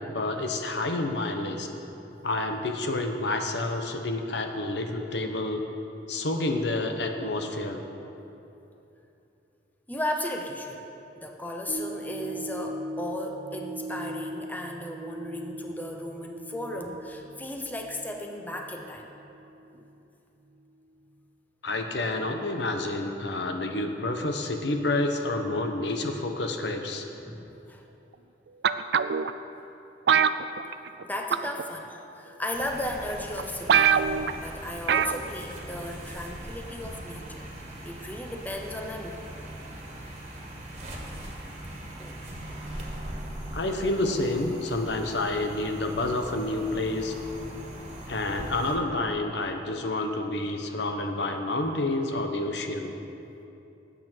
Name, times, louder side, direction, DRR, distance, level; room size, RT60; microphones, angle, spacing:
voice 1, 0.1-1.7 2.2-5.6 6.1-7.8 21.6-27.1 43.5-47.1 48.1-52.9, left 2 dB, 70° left, 4 dB, 1.0 m, -29 dB
voice 2, 9.9-10.8 11.2-19.1 19.7-19.8 27.2-27.8 31.0-37.5 37.8-39.2 42.0-42.2 42.5-42.6, left 1 dB, 10° left, 2 dB, 0.8 m, -35 dB
sound 1, 11.7-20.1 20.6-20.7, right 1 dB, 90° right, 1.5 m, -40 dB
sound 2, 28.6-29.3 30.1-31.0 31.3-31.6 32.5-32.6 33.1-33.2 33.4-33.5 33.7-34.3 34.9-35.2 35.5-35.6, right 7 dB, 65° right, 0.4 m, -22 dB
sound 3, 32.5-48.8, right 1 dB, 35° right, 1.8 m, -40 dB
19.0 x 8.3 x 4.5 m, 2.9 s
head